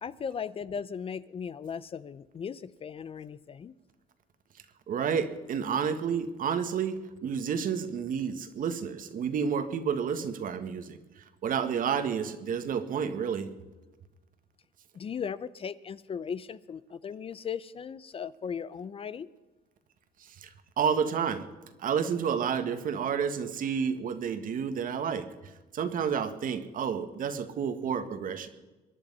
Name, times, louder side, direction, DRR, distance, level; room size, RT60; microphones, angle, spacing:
voice 1, 0.0-3.7 14.9-19.3, left 7 dB, 35° left, 17 dB, 0.5 m, -37 dB
voice 2, 4.9-11.0 11.4-13.5 20.4-21.4 21.8-25.3 25.7-28.5, right 7 dB, 55° right, 9 dB, 1.6 m, -30 dB
23.5 x 10.5 x 5.5 m, 1.2 s
cardioid pair, 110°, 17 cm